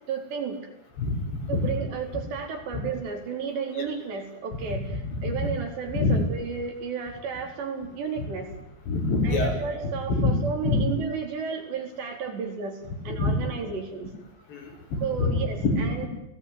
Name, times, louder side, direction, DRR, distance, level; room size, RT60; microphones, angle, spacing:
voice 1, 0.1-0.6 1.5-4.9 5.2-8.5 9.2-12.8 13.1-14.1 15.0-16.1, right 5 dB, 80° right, 3 dB, 6.5 m, -32 dB
voice 2, 4.7-5.5 5.9-6.2 8.2-8.3 8.9-9.5 10.1-10.3 10.6-10.8 13.1-13.5 14.5-15.3 15.6-16.1, left 3 dB, 85° left, 1 dB, 8.3 m, -26 dB
28.5 x 19.0 x 9.6 m, 0.81 s
omnidirectional pair, 4.9 m